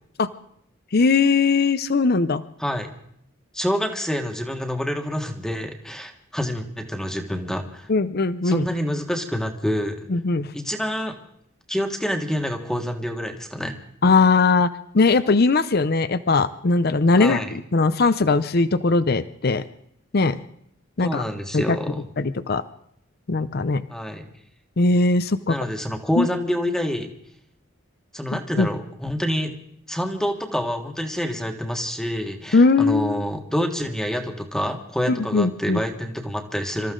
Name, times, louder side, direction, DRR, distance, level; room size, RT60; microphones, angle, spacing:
voice 1, 0.9-2.4 7.9-8.7 10.1-10.5 14.0-14.7 14.9-19.6 20.1-20.4 21.0-21.2 21.5-21.8 22.2-22.6 23.3-23.8 24.8-25.6 26.2-26.3 28.6-28.7 32.5-33.2 35.1-35.8, left 3 dB, 50° left, 13 dB, 0.6 m, -19 dB
voice 2, 3.5-7.9 8.4-10.0 10.5-11.2 11.7-13.7 17.2-17.6 21.0-22.1 23.9-24.2 25.5-27.1 28.1-29.5 29.9-36.9, equal, 5° left, 4 dB, 1.6 m, -27 dB
26.0 x 14.0 x 3.9 m, 0.70 s
head